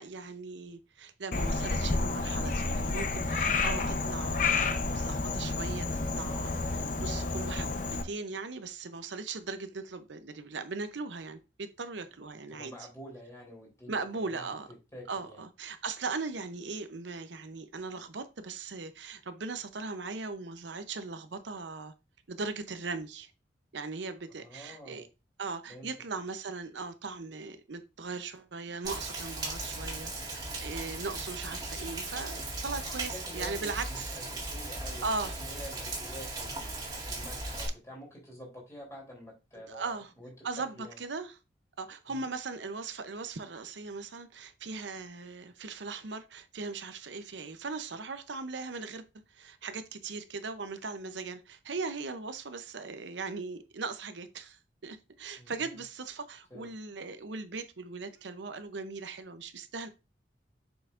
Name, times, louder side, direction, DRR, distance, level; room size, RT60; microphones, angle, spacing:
voice 1, 0.0-12.7 13.9-14.7 15.1-21.9 22.3-23.3 23.7-25.1 25.4-34.2 35.0-35.3 39.7-40.1 40.4-41.4 41.8-49.0 49.3-59.9, right 4 dB, 85° right, 0.7 m, -39 dB
Frog, 1.3-8.0, left 3 dB, 45° left, 0.8 m, -30 dB
voice 2, 12.5-14.5 14.9-15.4 24.4-25.0 25.7-25.9 32.8-35.1 35.4-36.7 37.0-40.3 40.7-41.0 42.1-42.2 55.4-55.8 56.5-56.7, equal, 15° left, 3.0 m, -47 dB
Rain, 28.8-37.7, right 2 dB, 20° right, 1.9 m, -38 dB
7.0 x 5.6 x 2.5 m
head